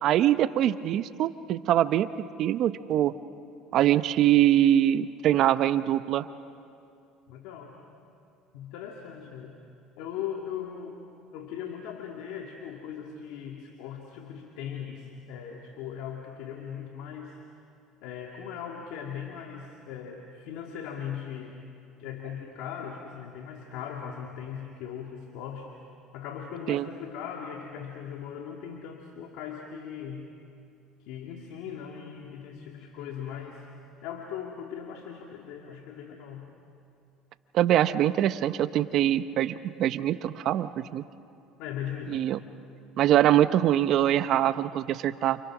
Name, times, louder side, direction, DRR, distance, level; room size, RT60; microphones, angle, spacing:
voice 1, 0.0-2.1 2.4-3.1 3.7-6.3 26.7-26.9 37.5-41.0 42.1-42.4 43.0-45.4, right 12 dB, 60° right, 12 dB, 0.9 m, -23 dB
voice 2, 7.3-7.9 8.5-9.6 10.0-11.0 11.3-17.4 18.0-21.6 22.0-25.7 26.1-30.3 31.1-33.6 34.0-36.5 41.6-42.3, left 8 dB, 75° left, 1 dB, 2.2 m, -39 dB
29.0 x 28.0 x 6.2 m, 2.5 s
supercardioid pair, 90°, 0 cm